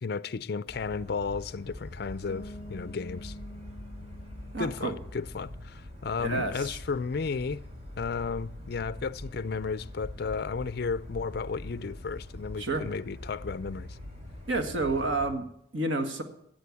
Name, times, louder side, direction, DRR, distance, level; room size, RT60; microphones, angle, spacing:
voice 1, 0.0-3.3 4.6-7.6 8.0-14.0, left 5 dB, 55° left, 0.4 m, -33 dB
sound 1, 0.7-15.3, left 1 dB, 35° right, 3.0 m, -44 dB
Bass guitar, 2.3-6.0, left 1 dB, 30° left, 1.4 m, -48 dB
voice 2, 4.5-4.9 6.2-6.7 12.6-12.8 14.5-16.2, right 2 dB, 85° right, 1.8 m, -30 dB
15.5 x 7.6 x 8.4 m
head